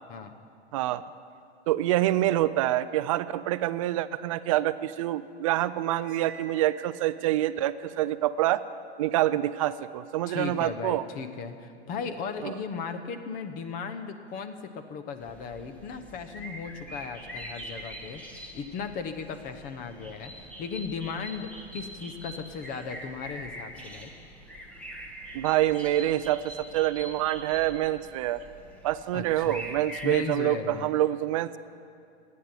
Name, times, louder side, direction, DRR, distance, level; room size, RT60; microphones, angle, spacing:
voice 1, 1.7-8.6 9.0-11.0 12.4-12.5 25.3-28.4 28.8-31.6, right 14 dB, 30° right, 14 dB, 0.4 m, -26 dB
Cymbal, 6.0-7.4, right 4 dB, 50° right, 1.0 m, -49 dB
voice 2, 10.3-24.1 29.1-29.7 30.0-30.9, left 6 dB, 25° left, 9 dB, 1.0 m, -36 dB
sound 1, 15.2-30.2, right 1 dB, 5° left, 1.2 m, -44 dB
14.5 x 9.6 x 9.8 m, 2.4 s
hypercardioid pair, 140°, 33 cm